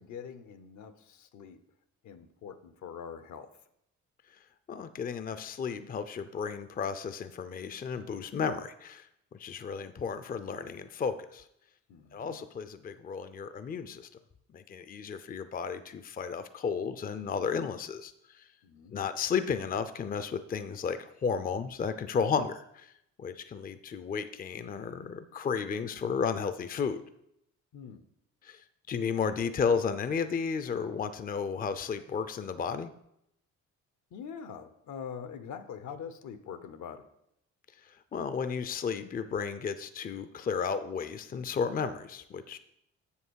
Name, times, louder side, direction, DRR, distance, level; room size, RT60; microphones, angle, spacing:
voice 1, 0.0-1.6 2.0-3.5 11.9-12.4 18.6-19.0 27.7-28.0 34.1-37.0, left 7 dB, 70° left, 11 dB, 0.8 m, -44 dB
voice 2, 4.7-11.5 12.1-14.1 14.5-18.5 18.9-22.9 23.2-27.0 28.4-32.9 37.9-42.6, left 6 dB, 30° left, 11 dB, 0.5 m, -33 dB
7.2 x 5.7 x 6.3 m, 0.78 s
cardioid pair, 90°, 30 cm